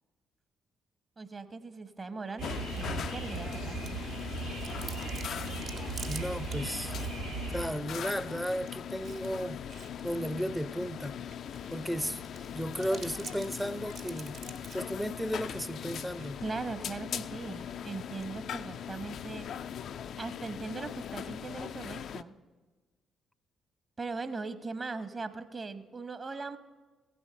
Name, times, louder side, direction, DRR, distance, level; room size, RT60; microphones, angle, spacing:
voice 1, 1.2-4.0 16.4-19.5 20.2-22.3 24.0-26.6, right 4 dB, 35° right, 1.0 m, -39 dB
sound 1, 2.4-22.2, left 9 dB, 60° left, 0.3 m, -40 dB
sound 2, 2.4-7.7, right 4 dB, 90° right, 1.8 m, -38 dB
Chewing mastication, 3.8-21.4, right 5 dB, 60° right, 1.2 m, -52 dB
voice 2, 6.1-7.0 7.5-9.6 10.0-11.2 11.7-12.2 12.5-14.4 14.7-16.4, equal, ahead, 0.5 m, -34 dB
15.5 x 8.2 x 6.5 m
hypercardioid pair, 45°, 0 cm